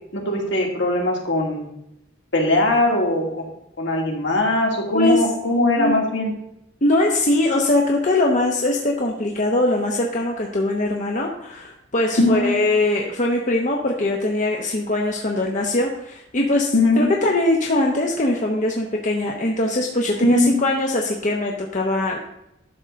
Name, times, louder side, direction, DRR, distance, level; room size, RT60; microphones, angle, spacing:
voice 1, 0.1-1.7 2.3-3.4 3.8-6.3 12.2-12.5 16.7-17.0 20.2-20.5, left 2 dB, 65° left, 0 dB, 2.3 m, -20 dB
voice 2, 6.8-22.3, left 2 dB, 40° left, 0 dB, 1.0 m, -21 dB
11.5 x 3.9 x 6.8 m, 0.82 s
head